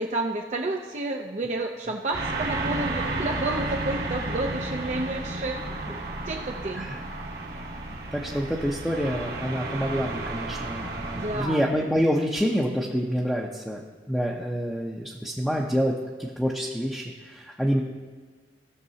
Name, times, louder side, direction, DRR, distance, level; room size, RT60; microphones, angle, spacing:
voice 1, 0.0-5.6 6.3-6.9 11.2-11.7, right 2 dB, 40° right, 1 dB, 0.5 m, -30 dB
sound 1, 2.1-11.5, right 2 dB, 65° right, 1.4 m, -32 dB
voice 2, 8.1-13.8 14.1-15.9 16.2-17.8, equal, ahead, -3 dB, 0.7 m, -27 dB
17.0 x 6.6 x 2.8 m, 1.5 s
head